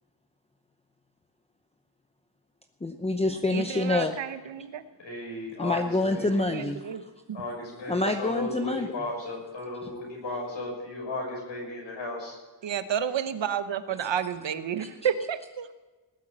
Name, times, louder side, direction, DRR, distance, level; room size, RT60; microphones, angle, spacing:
voice 1, 2.8-4.2 5.6-7.0 7.9-8.9 14.0-14.1, left 2 dB, 15° left, 5 dB, 0.7 m, -27 dB
voice 2, 3.5-4.8 6.5-7.0 7.3-7.4 12.6-15.7, right 8 dB, 75° right, 11 dB, 1.0 m, -30 dB
voice 3, 5.0-6.5 7.3-12.4, left 2 dB, 75° left, -2 dB, 6.9 m, -35 dB
19.0 x 8.3 x 7.6 m, 1.2 s
wide cardioid pair, 115°, 45 cm